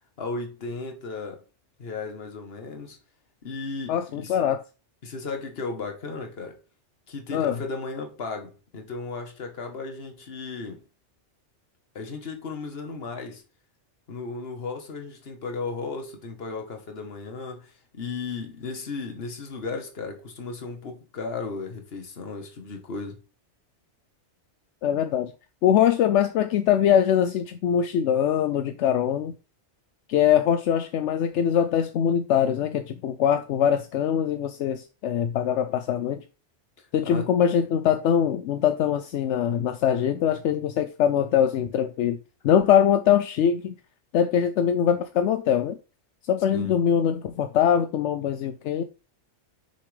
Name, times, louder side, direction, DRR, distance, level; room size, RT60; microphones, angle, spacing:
voice 1, 0.2-1.4 1.8-3.0 3.4-4.4 5.0-6.6 7.1-10.8 11.9-13.4 14.1-23.2 37.0-37.3 46.5-46.7, left 4 dB, 60° left, 1.5 m, -35 dB
voice 2, 3.9-4.6 7.3-7.6 24.8-25.3 25.6-29.3 30.1-36.2 36.9-42.2 42.4-43.7 44.1-45.8 46.2-48.8, left 9 dB, 80° left, 0.9 m, -22 dB
6.5 x 5.7 x 3.3 m
omnidirectional pair, 1.2 m